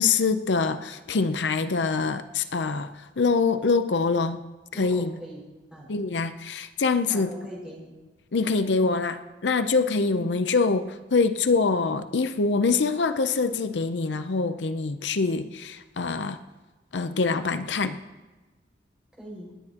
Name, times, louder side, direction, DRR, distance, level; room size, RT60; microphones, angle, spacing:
voice 1, 0.0-4.4 4.7-5.1 5.9-7.3 8.3-16.4 16.9-18.0, left 4 dB, 85° left, 10 dB, 0.6 m, -25 dB
voice 2, 4.7-5.4 5.7-5.9 7.1-7.9 10.1-10.4 19.1-19.5, equal, 5° right, -4 dB, 5.7 m, -40 dB
27.5 x 10.5 x 2.9 m, 1.2 s
head